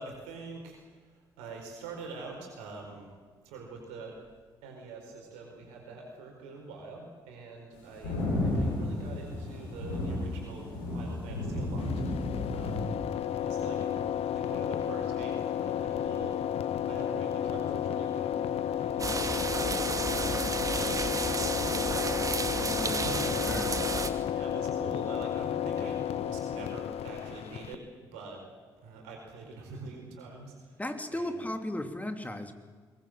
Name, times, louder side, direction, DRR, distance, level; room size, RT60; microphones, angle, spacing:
voice 1, 0.0-3.1 3.4-4.2 4.6-12.0 12.5-12.9 13.3-18.3 18.6-21.1 21.4-22.3 22.8-24.0 24.3-27.8 28.1-28.4 28.8-30.8 31.1-31.4, right 3 dB, 75° right, 1 dB, 4.7 m, -45 dB
sound 1, 7.8-12.8, left 2 dB, 80° left, 6.5 m, -32 dB
sound 2, 11.8-27.7, left 10 dB, 60° left, 0.9 m, -32 dB
sound 3, 19.0-24.1, right 3 dB, 30° right, 2.6 m, -32 dB
voice 2, 22.7-23.2 23.4-23.7 30.8-32.5, left 1 dB, 15° left, 7 dB, 3.2 m, -36 dB
22.5 x 20.5 x 7.7 m, 1.5 s
hypercardioid pair, 40°, 11 cm